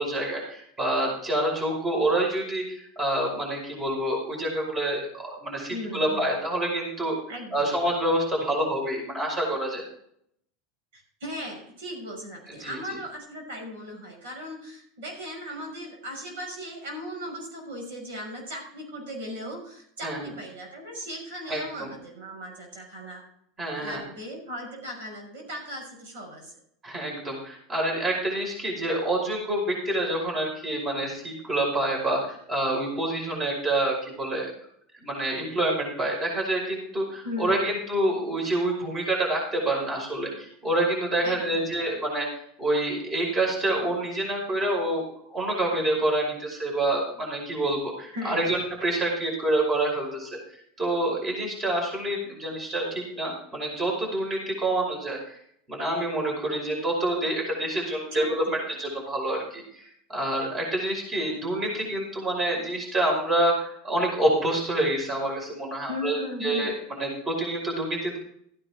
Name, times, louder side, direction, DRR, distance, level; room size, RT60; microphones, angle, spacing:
voice 1, 0.0-7.2 7.5-9.8 12.6-12.8 20.0-20.3 21.5-21.9 23.6-24.0 26.8-34.5 35.0-42.3 42.6-45.0 45.3-50.4 50.8-55.4 55.7-58.4 58.7-59.8 60.1-68.2, right 1 dB, 30° right, -1 dB, 5.3 m, -27 dB
voice 2, 5.7-6.3 7.3-7.8 10.9-23.2 23.8-26.5 37.2-37.7 41.2-41.6 48.1-48.5 58.1-58.6 65.9-66.8, equal, 70° right, 1 dB, 6.2 m, -37 dB
15.0 x 9.8 x 3.7 m, 0.68 s
hypercardioid pair, 90°, 0 cm